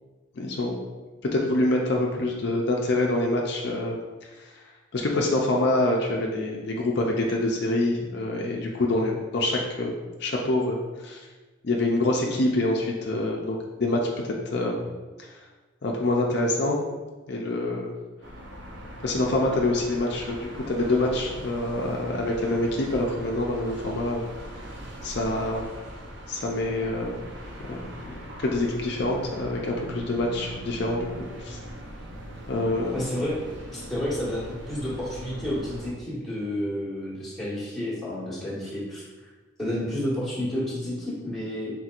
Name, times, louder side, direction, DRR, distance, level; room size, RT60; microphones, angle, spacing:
voice 1, 0.3-0.8 1.2-4.0 4.4-4.5 4.9-11.2 11.6-14.8 15.2-15.3 15.8-16.8 17.3-17.9 19.0-24.2 24.5-24.7 25.0-25.7 26.3-27.2 27.7-31.6 32.5-33.0, left 2 dB, 55° left, -1 dB, 0.5 m, -26 dB
sound 1, 18.2-35.9, equal, 65° right, 0.7 m, -40 dB
voice 2, 32.9-33.3 33.7-39.3 39.6-41.7, left 1 dB, ahead, -9 dB, 1.3 m, -30 dB
4.3 x 3.8 x 2.5 m, 1.3 s
head